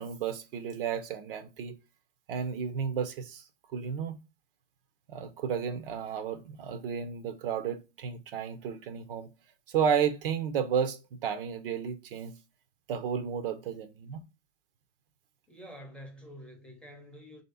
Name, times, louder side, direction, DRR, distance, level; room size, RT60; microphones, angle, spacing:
voice 1, 0.0-1.8 2.3-3.4 3.7-4.2 5.1-9.3 9.7-12.3 12.9-14.2, right 7 dB, 50° right, 0.6 m, -32 dB
voice 2, 15.5-17.4, equal, 5° left, 0.6 m, -48 dB
3.1 x 2.7 x 4.1 m
figure-of-eight pair, 105°, 36 cm